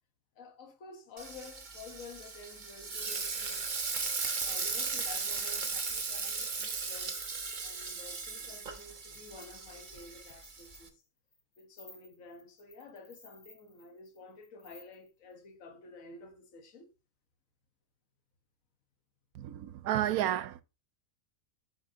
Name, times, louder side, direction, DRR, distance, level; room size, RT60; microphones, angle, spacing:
voice 1, 0.3-4.0 4.4-7.2 7.6-11.0 11.6-16.9, left 3 dB, 65° left, 1.6 m, -51 dB
Frying (food), 1.2-10.9, right 4 dB, 35° right, 1.1 m, -37 dB
sound 1, 8.7-8.9 9.1-15.3, left 2 dB, 80° left, 3.1 m, -58 dB
voice 2, 19.3-20.6, right 12 dB, 90° right, 1.1 m, -31 dB
8.0 x 6.9 x 2.7 m
omnidirectional pair, 1.5 m